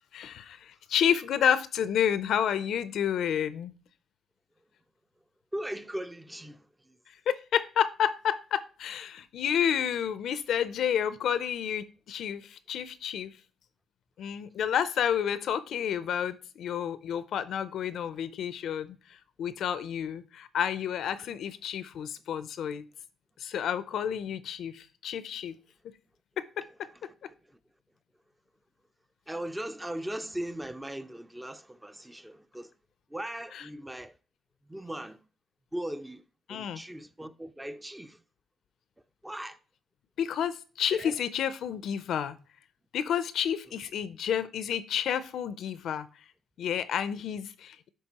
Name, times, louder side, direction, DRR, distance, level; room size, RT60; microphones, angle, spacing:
voice 1, 0.1-3.7 7.1-13.3 14.2-22.8 23.4-25.6 26.4-26.6 33.5-33.7 36.5-36.8 40.2-42.4 42.9-46.1 46.6-47.9, left 9 dB, 70° left, 0.4 m, -30 dB
voice 2, 5.5-7.0 22.0-22.1 29.3-32.7 33.1-34.1 34.7-35.2 35.7-36.2 36.5-38.2 39.2-39.6 40.9-41.1, right 1 dB, 10° right, 0.4 m, -38 dB
10.0 x 3.5 x 2.9 m
cardioid pair, 90°, 0 cm